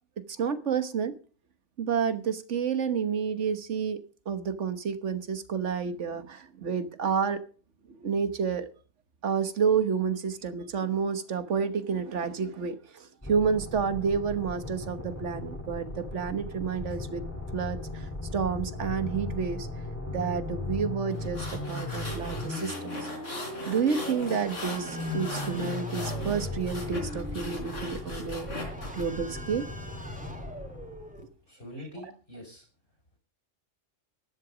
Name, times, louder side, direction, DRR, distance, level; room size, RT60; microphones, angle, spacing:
voice 1, 0.3-1.1 1.8-4.0 4.2-7.4 7.9-8.7 9.2-17.2 17.5-19.7 20.1-23.1 23.7-29.6, right 6 dB, 70° right, 11 dB, 1.5 m, -30 dB
sound 1, 13.2-31.3, left 2 dB, 10° left, 2.1 m, -37 dB
sound 2, 21.1-29.0, left 2 dB, 85° left, 4.2 m, -40 dB
sound 3, 22.0-31.2, equal, 5° right, 2.1 m, -44 dB
voice 2, 31.5-32.7, left 1 dB, 55° left, 5 dB, 5.2 m, -44 dB
13.0 x 11.0 x 5.1 m, 0.39 s
omnidirectional pair, 1.3 m